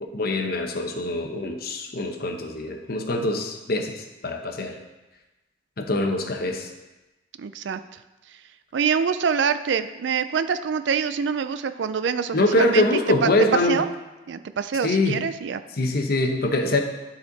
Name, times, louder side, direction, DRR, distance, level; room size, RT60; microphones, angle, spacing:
voice 1, 0.0-3.9 4.2-4.7 5.8-6.7 12.3-13.8 14.8-15.2 15.8-16.8, left 2 dB, 55° left, 4 dB, 0.9 m, -24 dB
voice 2, 7.4-7.8 8.7-13.3 13.7-13.9 14.3-15.6, right 6 dB, 75° right, 11 dB, 0.4 m, -25 dB
12.5 x 4.3 x 4.0 m, 1.1 s
head